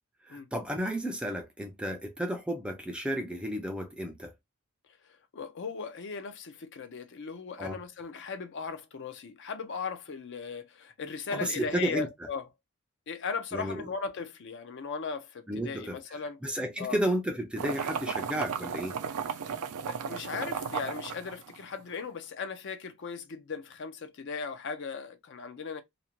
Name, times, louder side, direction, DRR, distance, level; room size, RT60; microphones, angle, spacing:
voice 1, 0.3-4.3 7.6-7.8 11.3-12.1 13.5-13.8 15.5-19.0, equal, 5° right, 0.3 m, -33 dB
voice 2, 5.3-12.4 13.1-16.4 16.8-17.0 19.3-19.5 19.9-25.8, left 5 dB, 55° left, 0.5 m, -37 dB
sound 1, 17.6-21.9, right 6 dB, 90° right, 0.4 m, -35 dB
2.5 x 2.1 x 2.8 m
head